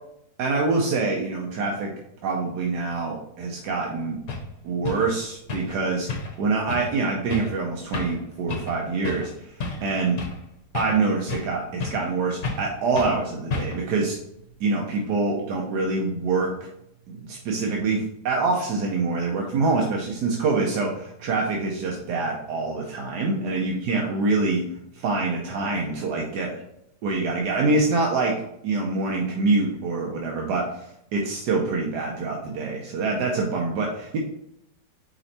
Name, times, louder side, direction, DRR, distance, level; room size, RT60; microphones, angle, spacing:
voice 1, 0.4-1.9 2.2-4.2 4.6-6.1 6.4-9.5 9.8-10.2 10.7-14.2 14.6-16.5 17.1-24.6 24.9-26.5 27.0-28.3 28.6-30.6 31.1-34.2, right 3 dB, 85° right, 0 dB, 1.4 m, -25 dB
sound 1, 3.8-3.9 4.3-4.5 4.8-5.1 5.5-5.8 6.1-6.4 6.7-6.9 7.3-7.5 7.9-8.2 8.5-8.8 9.0-9.3 9.6-10.4 10.7-11.5 11.8-12.1 12.4-12.7 12.9-13.2 13.5-13.9, left 3 dB, 60° left, 1.5 m, -31 dB
5.3 x 4.3 x 4.2 m, 0.78 s
omnidirectional pair, 1.7 m